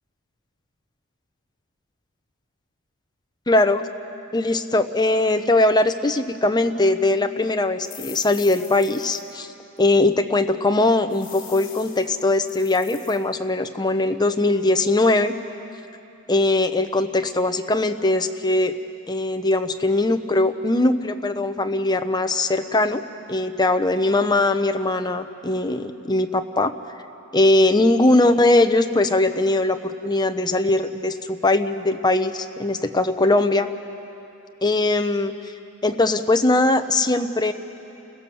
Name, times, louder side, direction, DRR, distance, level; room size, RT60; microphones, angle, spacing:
voice 1, 3.5-3.9 4.3-9.5 9.8-15.3 16.3-18.7 19.1-23.0 23.3-26.7 27.3-33.7 34.6-35.3 35.8-37.5, left 2 dB, 20° left, 7 dB, 0.8 m, -20 dB
sound 1, 7.8-9.3 9.8-9.9 11.1-13.2, left 7 dB, 45° left, 4.0 m, -42 dB
29.5 x 16.5 x 7.0 m, 2.8 s
head